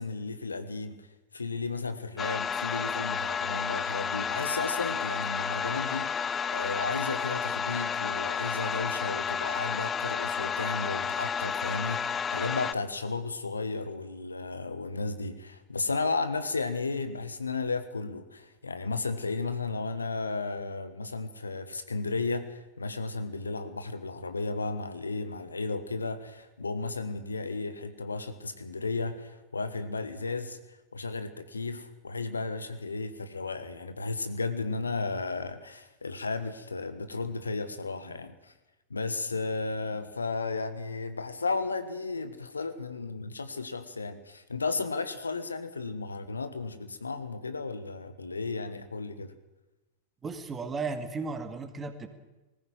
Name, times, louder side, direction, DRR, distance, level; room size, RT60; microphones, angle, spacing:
voice 1, 0.0-38.5 38.9-49.3, left 3 dB, 75° left, 10 dB, 1.4 m, -34 dB
sound 1, 2.2-12.7, left 6 dB, 20° left, 0.8 m, -31 dB
voice 2, 50.2-52.1, right 4 dB, 20° right, 8 dB, 2.1 m, -35 dB
19.5 x 15.0 x 9.3 m, 1.0 s
figure-of-eight pair, 90°, 0 cm